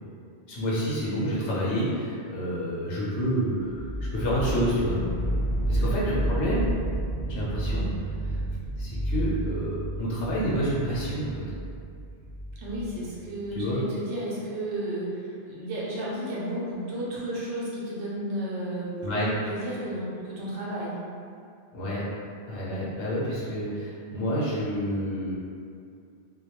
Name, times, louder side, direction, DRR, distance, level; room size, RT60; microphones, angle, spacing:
voice 1, 0.5-3.8 4.1-5.0 5.7-6.7 7.3-7.9 8.8-11.4 13.6-13.8 19.0-19.3 21.7-22.0 22.5-25.3, equal, 80° left, -7 dB, 0.9 m, -28 dB
sound 1, 3.7-13.6, right 1 dB, 20° left, 0.6 m, -31 dB
voice 2, 12.6-20.9, right 1 dB, 85° right, -7 dB, 0.9 m, -33 dB
2.2 x 2.1 x 2.9 m, 2.3 s
omnidirectional pair, 1.2 m